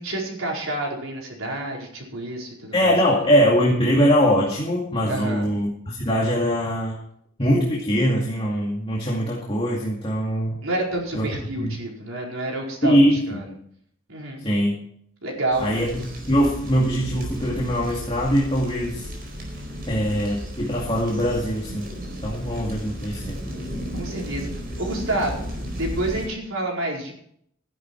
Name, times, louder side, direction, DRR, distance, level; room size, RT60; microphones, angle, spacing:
voice 1, 0.0-2.9 5.1-5.5 10.6-13.0 13.3-13.4 14.1-14.4 15.2-15.7 23.9-25.4 25.7-27.1, right 1 dB, 85° right, -1 dB, 4.7 m, -28 dB
voice 2, 2.7-7.0 7.4-10.6 11.1-11.7 12.8-13.4 14.4-14.8 15.6-19.1 19.9-21.9 22.2-23.4, equal, 25° left, -3 dB, 2.2 m, -22 dB
sound 1, 15.5-26.3, equal, 50° right, 4.5 m, -34 dB
14.5 x 11.0 x 4.7 m, 0.67 s
head